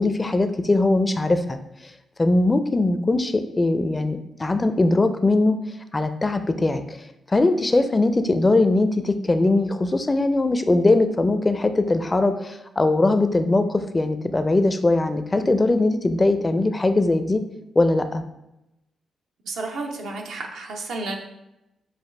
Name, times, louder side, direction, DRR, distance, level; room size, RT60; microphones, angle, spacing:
voice 1, 0.0-1.6 2.2-5.6 5.9-7.0 7.3-17.4 17.8-18.2, left 2 dB, 30° left, 9 dB, 0.4 m, -20 dB
voice 2, 19.4-21.2, right 3 dB, 85° right, 1 dB, 0.6 m, -31 dB
5.7 x 2.5 x 3.3 m, 0.90 s
supercardioid pair, 55°, 0 cm